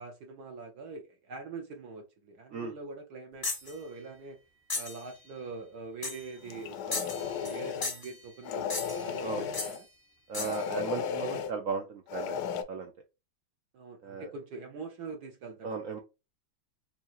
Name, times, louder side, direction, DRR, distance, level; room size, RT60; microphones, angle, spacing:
voice 1, 0.0-4.4 4.7-9.9 13.7-16.0, right 4 dB, 65° right, 1.2 m, -44 dB
sound 1, 3.4-3.7 4.7-5.0 6.0-6.3 6.9-7.6 7.8-8.1 8.7-9.1 9.5-9.8 10.3-10.6, left 3 dB, 30° left, 0.4 m, -35 dB
sound 2, 6.4-7.9 8.4-9.8 10.3-11.5 12.1-12.6, left 7 dB, 75° left, 0.9 m, -35 dB
voice 2, 10.3-12.4 12.7-12.9 14.0-14.3 15.6-16.0, right 5 dB, 80° right, 0.7 m, -35 dB
4.6 x 2.8 x 2.5 m
omnidirectional pair, 2.2 m